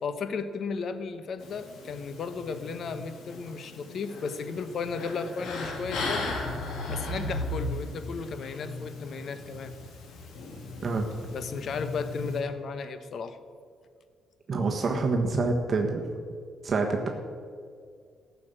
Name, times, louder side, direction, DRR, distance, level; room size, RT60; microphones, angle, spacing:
voice 1, 0.0-6.4 6.9-9.7 11.3-13.4, left 5 dB, 60° left, 10 dB, 1.1 m, -34 dB
sound 1, 1.4-12.4, left 2 dB, 80° left, 3.0 m, -37 dB
voice 2, 14.5-16.0 16.6-17.1, right 3 dB, 40° right, 1 dB, 1.5 m, -26 dB
14.5 x 7.0 x 9.0 m, 2.1 s
cardioid pair, 90°, 0 cm